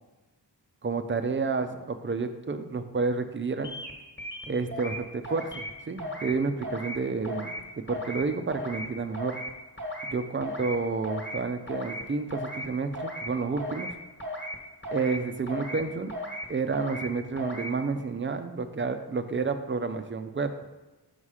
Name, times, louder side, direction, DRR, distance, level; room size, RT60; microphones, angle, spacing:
voice 1, 0.8-3.7 4.5-9.4 10.1-13.9 14.9-16.1 16.5-20.5, right 4 dB, 30° right, 8 dB, 0.4 m, -30 dB
sound 1, 3.6-3.9 4.2-5.0 5.2-5.7 6.0-6.3 6.6-7.0 7.2-7.6 7.9-8.2 8.5-8.9 9.1-9.5 9.8-10.1 10.4-10.8 11.0-11.4 11.7-12.0 12.3-12.7 12.9-13.3 13.6-13.9 14.2-14.6 14.8-15.2 15.5-15.8 16.1-16.5 16.7-17.1 17.4-17.7, equal, 25° left, 1.3 m, -36 dB
5.7 x 5.6 x 4.8 m, 1.1 s
wide cardioid pair, 160°, 42 cm